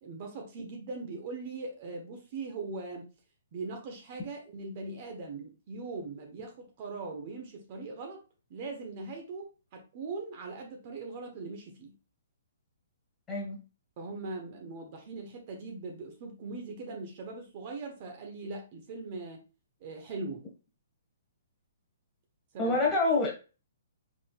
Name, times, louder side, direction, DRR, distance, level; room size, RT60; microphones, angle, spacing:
voice 1, 0.0-3.1 3.5-8.2 8.5-11.9 14.0-19.4 19.8-20.5 22.5-22.8, right 3 dB, 40° right, 3 dB, 1.1 m, -40 dB
voice 2, 13.3-13.6 22.6-23.4, left 3 dB, 15° left, -3 dB, 1.7 m, -27 dB
5.0 x 3.7 x 2.4 m, 0.32 s
hypercardioid pair, 150°, 0 cm